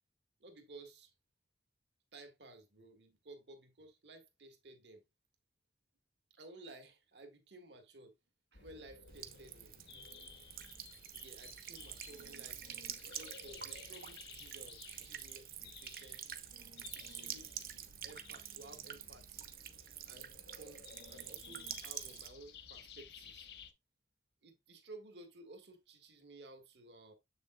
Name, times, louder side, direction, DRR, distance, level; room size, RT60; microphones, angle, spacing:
voice 1, 0.4-1.1 2.1-5.0 6.3-8.1 8.5-9.7 11.1-12.7 13.1-16.3 16.9-19.5 20.1-23.5 24.4-27.1, right 2 dB, 75° right, 1.6 m, -56 dB
sound 1, 8.5-23.7, left 6 dB, 70° left, 1.1 m, -56 dB
Buzz / Water tap faucet / Trickle dribble, 9.1-22.3, right 10 dB, 55° right, 0.9 m, -48 dB
7.6 x 6.7 x 2.3 m
head